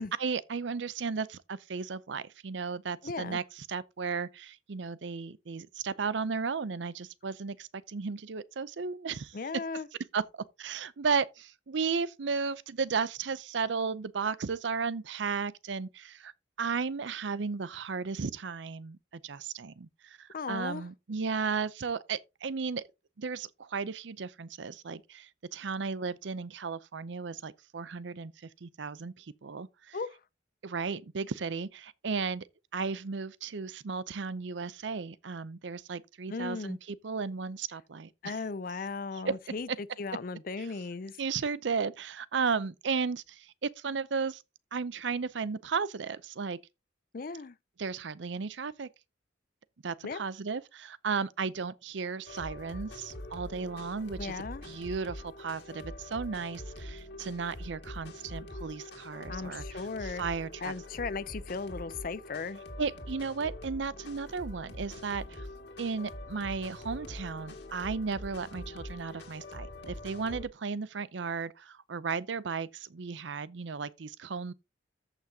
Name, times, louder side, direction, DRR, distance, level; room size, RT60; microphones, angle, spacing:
voice 1, 0.2-9.3 10.1-10.2 10.6-16.3 16.6-19.0 19.2-22.8 23.2-28.3 28.6-30.0 30.6-32.4 32.7-38.4 39.1-39.3 39.7-39.8 41.2-44.4 44.7-46.6 47.8-48.9 49.8-60.7 62.8-65.5 65.8-74.5, right 5 dB, 75° right, 0.6 m, -34 dB
voice 2, 3.0-3.4 9.3-9.9 20.3-20.8 29.9-30.2 36.3-36.8 38.2-41.1 47.1-47.6 50.0-50.2 54.2-54.6 59.3-60.2 60.6-62.6, left 4 dB, 45° left, 0.5 m, -37 dB
sound 1, 52.3-70.5, left 1 dB, 65° left, 2.1 m, -44 dB
14.0 x 5.8 x 2.8 m
head